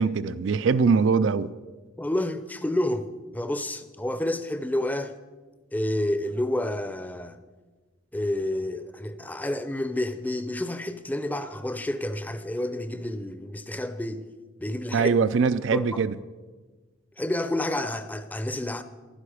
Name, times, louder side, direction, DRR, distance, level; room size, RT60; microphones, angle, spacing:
voice 1, 0.0-1.5 14.9-16.2, right 5 dB, 65° right, 0.4 m, -22 dB
voice 2, 2.0-5.1 5.7-7.4 8.1-14.3 14.6-15.2 15.7-16.0 17.2-18.8, left 1 dB, 10° left, 0.6 m, -29 dB
14.5 x 12.0 x 4.9 m
head